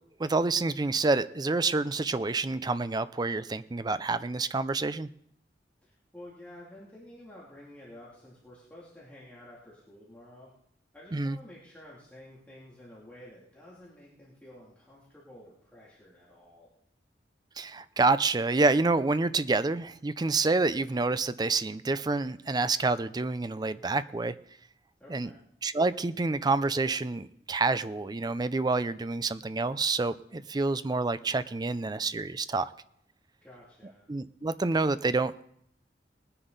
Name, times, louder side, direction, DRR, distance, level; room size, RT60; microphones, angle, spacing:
voice 1, 0.2-5.1 11.1-11.4 17.6-24.3 25.1-25.3 25.6-32.7 34.1-35.4, right 3 dB, 25° right, 14 dB, 0.4 m, -28 dB
voice 2, 5.8-10.5 10.9-16.7 25.0-25.4 33.4-34.1, left 1 dB, 10° left, -7 dB, 2.7 m, -51 dB
19.5 x 9.8 x 4.0 m, 0.71 s
head